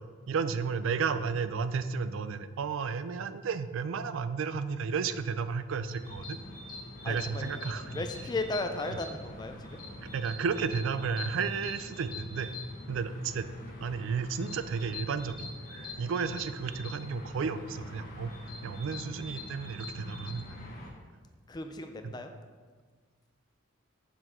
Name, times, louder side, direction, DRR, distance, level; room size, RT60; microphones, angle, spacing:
voice 1, 0.3-6.4 7.1-7.9 10.1-12.5 12.9-13.5 13.8-15.5 16.0-18.3 18.6-20.6, right 5 dB, 70° right, 12 dB, 0.3 m, -32 dB
sound 1, 5.9-20.9, left 2 dB, 45° left, 1.4 m, -44 dB
voice 2, 7.0-7.6 7.9-9.8 21.5-22.3, left 2 dB, 20° left, 6 dB, 0.3 m, -36 dB
6.7 x 4.2 x 4.3 m, 1.5 s
head